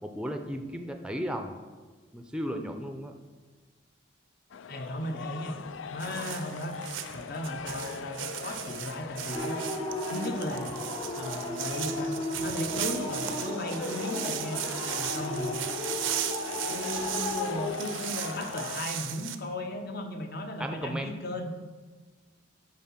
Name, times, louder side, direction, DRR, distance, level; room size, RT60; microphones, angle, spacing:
voice 1, 0.0-1.6 2.1-3.1 20.6-21.1, equal, 5° right, 5 dB, 0.5 m, -35 dB
sound 1, 4.5-18.8, left 6 dB, 75° left, 0.4 m, -41 dB
voice 2, 4.7-5.6 5.9-6.8 7.1-9.6 10.1-10.8 11.1-12.1 12.4-14.6 14.9-15.6 16.6-21.5, left 1 dB, 50° left, 6 dB, 0.9 m, -36 dB
sound 2, 6.0-19.4, right 11 dB, 80° right, 0.6 m, -37 dB
sound 3, 9.3-17.7, left 1 dB, 25° left, 1.2 m, -35 dB
11.0 x 4.7 x 5.8 m, 1.4 s
head